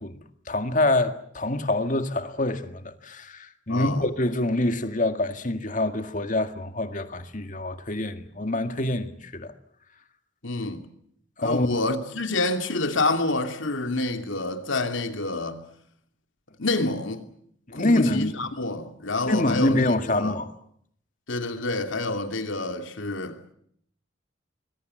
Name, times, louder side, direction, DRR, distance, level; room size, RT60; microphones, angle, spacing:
voice 1, 0.0-9.5 11.4-11.8 17.7-18.3 19.3-20.5, left 1 dB, 40° left, 1.9 m, -26 dB
voice 2, 3.7-4.1 10.4-10.9 11.4-15.6 16.6-17.2 17.7-20.4 21.3-23.4, left 2 dB, 90° left, 2.7 m, -28 dB
26.5 x 21.0 x 7.8 m
head